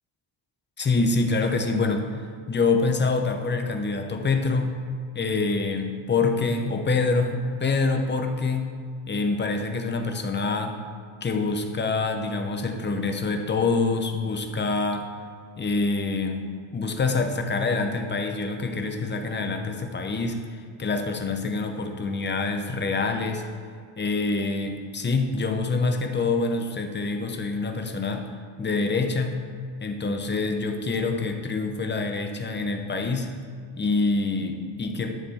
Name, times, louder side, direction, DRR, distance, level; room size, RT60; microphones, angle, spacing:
voice 1, 0.8-2.1 2.5-4.7 5.1-8.7 9.1-10.8 11.2-15.1 15.6-23.5 24.0-29.4 29.8-33.3 33.8-35.1, left 3 dB, 25° left, 4 dB, 0.7 m, -26 dB
11.0 x 6.7 x 4.2 m, 2.1 s
wide cardioid pair, 165°, 48 cm